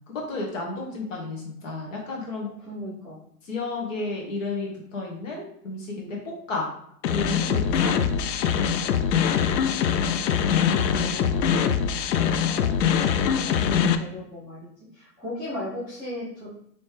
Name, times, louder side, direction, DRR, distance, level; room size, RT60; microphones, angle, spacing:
voice 1, 0.1-2.5 3.4-6.7 7.1-7.9 8.8-9.0, left 3 dB, 50° left, -1 dB, 1.5 m, -32 dB
voice 2, 2.6-3.2 10.6-11.9 12.4-16.5, left 1 dB, 5° left, -13 dB, 0.5 m, -37 dB
sound 1, 7.0-14.0, left 7 dB, 90° left, 0.6 m, -23 dB
4.1 x 3.2 x 3.3 m, 0.72 s
hypercardioid pair, 155°, 49 cm